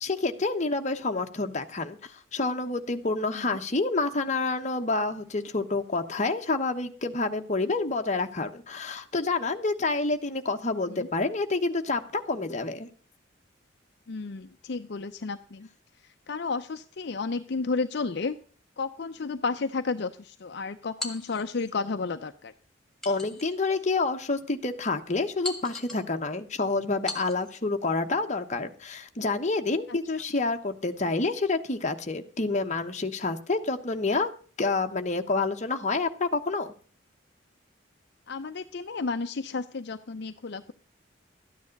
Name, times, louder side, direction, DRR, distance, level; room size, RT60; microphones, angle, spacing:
voice 1, 0.0-12.9 23.0-34.3 34.6-36.7, left 3 dB, 40° left, 6 dB, 1.1 m, -28 dB
voice 2, 14.1-15.7 16.0-18.4 18.8-22.5 38.3-40.7, left 4 dB, 60° left, 8 dB, 0.6 m, -32 dB
sound 1, 21.0-21.8 23.0-23.8 24.4-24.5 25.4-26.1 27.1-27.6, left 2 dB, 5° left, 2.3 m, -39 dB
13.0 x 9.5 x 5.2 m, 0.42 s
head